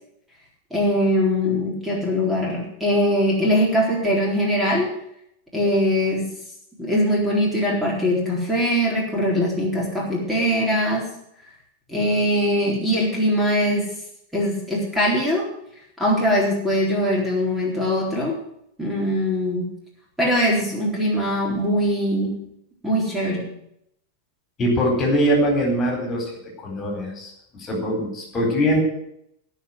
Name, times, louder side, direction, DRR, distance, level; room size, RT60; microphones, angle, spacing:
voice 1, 0.7-4.9 5.5-6.3 6.8-11.1 11.9-13.9 14.3-15.5 16.0-18.4 18.8-19.7 20.2-22.4 22.8-23.5, equal, 5° right, -3 dB, 4.0 m, -21 dB
voice 2, 24.6-26.3 26.6-28.8, equal, 25° left, 1 dB, 4.3 m, -22 dB
16.5 x 5.8 x 9.4 m, 0.75 s
figure-of-eight pair, 90°, 0 cm